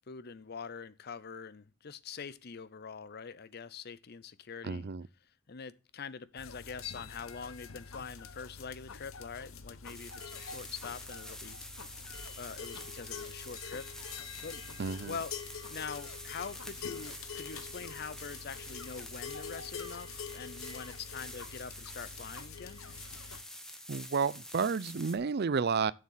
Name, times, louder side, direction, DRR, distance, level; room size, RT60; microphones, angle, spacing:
voice 1, 0.1-4.9 5.5-11.6 12.4-13.9 14.2-15.4 15.7-22.8, left 5 dB, 50° left, 0.6 m, -44 dB
voice 2, 4.6-5.0 14.8-15.1 23.9-25.9, right 5 dB, 50° right, 0.5 m, -31 dB
sound 1, 6.4-23.4, left 6 dB, 80° left, 0.9 m, -46 dB
sound 2, 9.9-25.2, left 1 dB, 5° left, 1.2 m, -48 dB
7.6 x 6.5 x 7.3 m
head